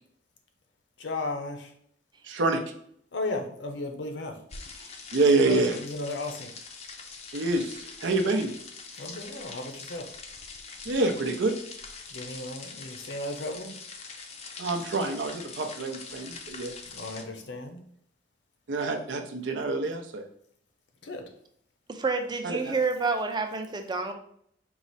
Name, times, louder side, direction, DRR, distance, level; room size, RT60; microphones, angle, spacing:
voice 1, 1.0-1.7 3.1-4.4 5.3-6.5 9.0-10.1 12.1-13.7 16.9-17.8 21.0-21.2, left 2 dB, 70° left, 4 dB, 0.7 m, -35 dB
voice 2, 2.2-2.6 5.1-5.8 7.3-8.5 10.8-11.5 14.6-16.7 18.7-20.2 22.4-22.8, right 3 dB, 80° right, 4 dB, 0.6 m, -26 dB
sound 1, 4.5-17.2, left 4 dB, 35° left, 0.4 m, -43 dB
voice 3, 21.9-24.1, right 4 dB, 25° right, 5 dB, 0.4 m, -29 dB
4.7 x 2.0 x 4.0 m, 0.66 s
head